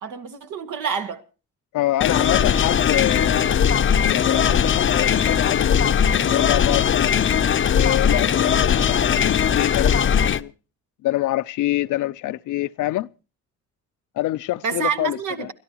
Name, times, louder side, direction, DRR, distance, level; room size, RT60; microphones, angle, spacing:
voice 1, 0.0-1.2 14.6-15.5, right 6 dB, 85° right, 1.8 m, -27 dB
voice 2, 1.7-3.5 4.1-7.1 7.7-10.5 11.0-13.1 14.2-15.5, left 15 dB, 80° left, 0.7 m, -26 dB
sound 1, 2.0-10.4, left 8 dB, 40° left, 0.7 m, -19 dB
29.5 x 12.5 x 3.0 m
cardioid pair, 90°, 30 cm